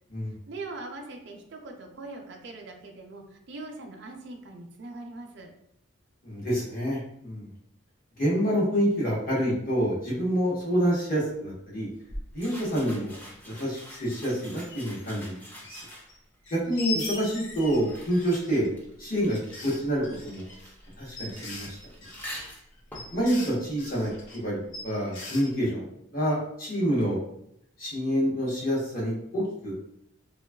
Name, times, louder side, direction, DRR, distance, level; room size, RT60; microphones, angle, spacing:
voice 1, 0.5-5.5, right 2 dB, 60° right, 2 dB, 0.4 m, -41 dB
voice 2, 6.2-7.5 8.2-11.9 12.3-13.2 13.4-15.4 15.7-15.8 16.5-18.7 19.0-20.7 21.0-21.8 23.1-25.8 26.1-27.2 27.8-29.9, equal, 45° left, -5 dB, 0.9 m, -27 dB
sound 1, 12.1-12.3 12.7-12.8 13.1-13.2 13.9-15.3 15.6-16.2 16.4-18.7 19.3-24.4 24.7-25.5, left 3 dB, 70° left, 0.6 m, -40 dB
sound 2, 12.3-16.3 17.1-24.5, equal, 10° left, 0.4 m, -46 dB
3.2 x 2.3 x 2.2 m, 0.75 s
head